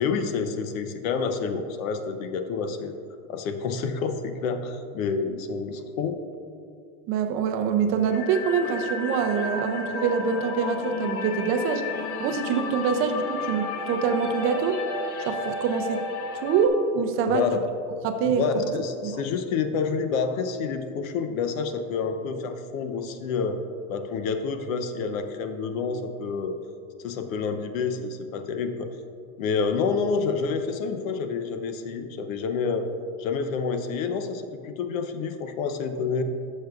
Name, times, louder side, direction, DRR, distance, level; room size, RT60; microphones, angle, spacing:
voice 1, 0.0-2.9 3.3-6.2 17.3-17.6 18.2-23.6 23.9-26.5 27.0-28.9 29.4-32.9 33.2-36.2, left 5 dB, 80° left, 7 dB, 0.8 m, -28 dB
voice 2, 7.1-11.9 12.2-14.8 15.3-16.0 16.3-17.4 18.0-18.7 19.0-19.1, right 6 dB, 35° right, 6 dB, 0.4 m, -25 dB
sound 1, 8.1-16.7, left 4 dB, 40° left, 0.8 m, -33 dB
11.5 x 6.4 x 2.4 m, 2.5 s
supercardioid pair, 145°, 41 cm